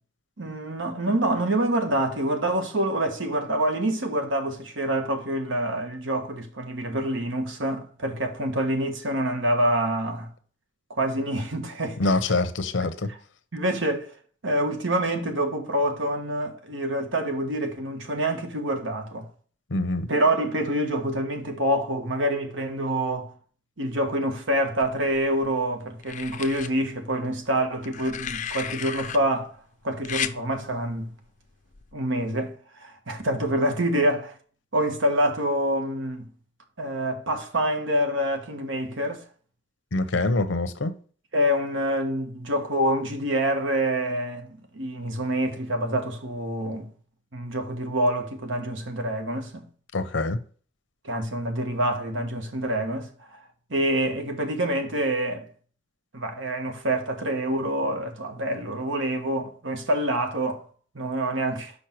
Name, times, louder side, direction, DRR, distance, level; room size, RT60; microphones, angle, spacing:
voice 1, 0.4-10.3 10.9-12.1 13.5-14.1 14.4-19.3 20.1-23.3 23.8-29.5 29.8-31.1 31.9-34.3 34.7-36.2 36.8-39.2 41.3-46.9 47.3-49.6 51.0-53.4 53.7-55.5 56.1-60.6 60.9-61.7, right 1 dB, 85° right, 1.4 m, -26 dB
voice 2, 12.0-13.1 19.7-20.1 39.9-40.9 49.9-50.4, left 2 dB, 75° left, 0.8 m, -25 dB
sound 1, 24.8-25.5 26.0-26.7 27.8-29.2 30.0-30.4 31.7-31.9, left 9 dB, 40° left, 0.5 m, -33 dB
6.4 x 5.4 x 4.4 m
head